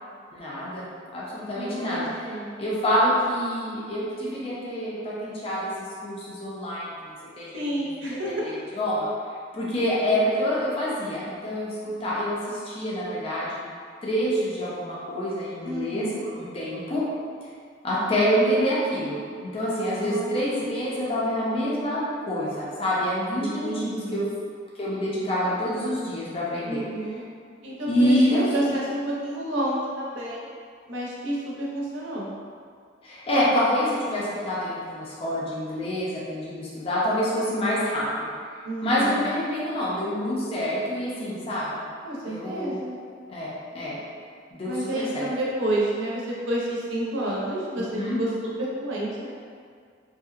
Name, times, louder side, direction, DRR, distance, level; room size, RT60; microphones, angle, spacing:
voice 1, 0.3-0.9 1.1-2.2 2.6-5.7 6.0-7.5 8.2-9.1 9.5-11.8 12.0-13.6 14.0-17.0 17.8-24.2 24.8-26.8 27.9-28.7 33.0-38.3 38.8-41.8 42.2-42.8 43.3-44.0 44.5-45.3 47.8-48.2, equal, 30° left, -7 dB, 0.5 m, -27 dB
voice 2, 1.5-2.5 7.5-8.7 15.6-16.2 20.0-20.6 23.4-24.3 26.7-27.2 27.6-30.5 30.9-32.3 38.6-39.2 42.0-43.0 44.6-49.3, right 1 dB, 90° right, -4 dB, 0.5 m, -30 dB
2.6 x 2.0 x 2.3 m, 2.1 s
head